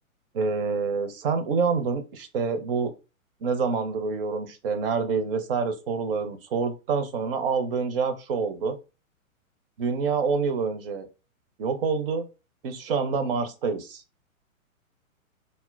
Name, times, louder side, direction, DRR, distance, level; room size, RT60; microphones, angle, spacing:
voice 1, 0.3-2.9 3.4-8.8 9.8-11.1 11.6-12.3 12.6-14.0, right 5 dB, 45° right, 8 dB, 0.6 m, -27 dB
4.2 x 2.1 x 2.3 m, 0.30 s
hypercardioid pair, 130°, 41 cm